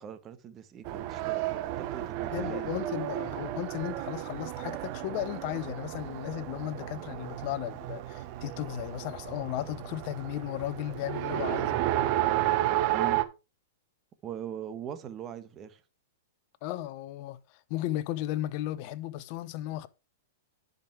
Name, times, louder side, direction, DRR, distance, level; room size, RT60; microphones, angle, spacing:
voice 1, 0.0-2.7 12.9-13.2 14.2-15.8, right 9 dB, 30° right, 1.3 m, -41 dB
Race car auto racing, 0.8-13.2, right 13 dB, 45° right, 1.0 m, -32 dB
voice 2, 2.3-11.8 16.6-19.9, left 14 dB, 50° left, 0.8 m, -35 dB
10.5 x 5.2 x 4.7 m
hypercardioid pair, 110°, 0 cm